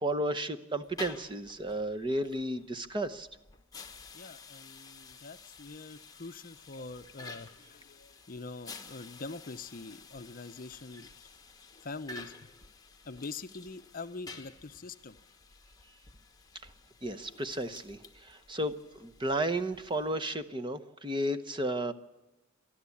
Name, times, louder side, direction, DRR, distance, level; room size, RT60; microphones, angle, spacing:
voice 1, 0.0-3.3 17.0-18.7 19.0-21.9, right 1 dB, 20° right, 10 dB, 1.0 m, -33 dB
sound 1, 0.8-20.4, left 4 dB, 20° left, 1.3 m, -51 dB
voice 2, 4.1-11.3 11.8-12.5 13.0-15.2, left 3 dB, 40° left, 11 dB, 0.7 m, -44 dB
28.0 x 11.5 x 8.5 m, 1.0 s
head